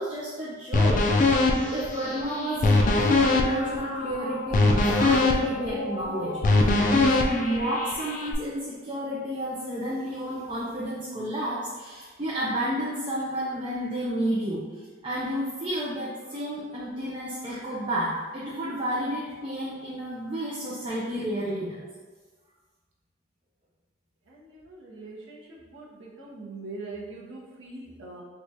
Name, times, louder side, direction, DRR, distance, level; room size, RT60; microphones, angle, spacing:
voice 1, 0.0-6.4 6.9-14.6 15.0-21.8, equal, 25° right, -7 dB, 0.4 m, -31 dB
sound 1, 0.7-8.3, left 2 dB, 40° left, 0.3 m, -23 dB
voice 2, 24.9-25.4 25.7-25.8 26.2-28.2, right 3 dB, 80° right, -4 dB, 0.8 m, -41 dB
4.4 x 2.3 x 2.7 m, 1.4 s
head